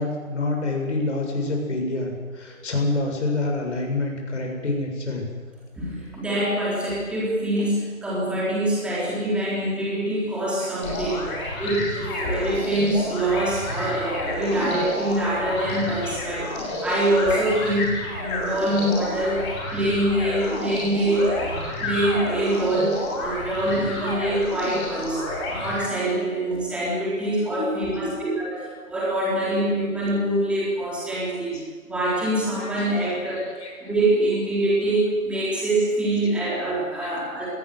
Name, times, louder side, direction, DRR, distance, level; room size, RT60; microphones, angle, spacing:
voice 1, 0.0-5.3 10.8-11.2 16.7-16.8 27.6-28.2 32.6-32.9 33.6-33.9 37.0-37.1, left 2 dB, 55° left, 1 dB, 7.3 m, -27 dB
voice 2, 5.8-11.3 11.6-28.6 28.9-33.4 33.8-37.5, right 1 dB, 5° right, -6 dB, 3.9 m, -25 dB
sound 1, 10.8-25.8, left 1 dB, 20° left, 6.8 m, -30 dB
21.5 x 18.5 x 8.0 m, 1.5 s
figure-of-eight pair, 160°, 42 cm